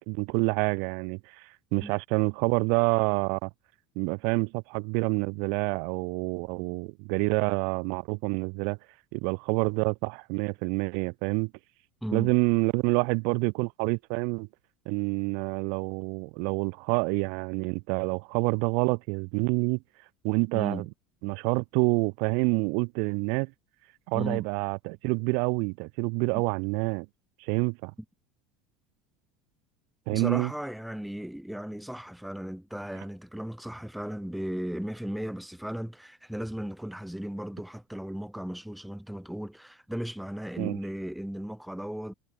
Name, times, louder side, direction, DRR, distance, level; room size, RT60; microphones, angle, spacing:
voice 1, 0.0-3.5 4.0-8.8 9.1-11.5 12.1-14.5 14.9-19.8 20.2-20.8 21.2-23.5 24.1-27.1 27.4-27.9 30.1-30.5 40.6-40.8, right 37 dB, 65° right, 2.3 m, -27 dB
voice 2, 12.0-12.3 20.5-20.9 24.1-24.5 30.1-42.1, equal, ahead, 2.5 m, -36 dB
supercardioid pair, 140°, 0 cm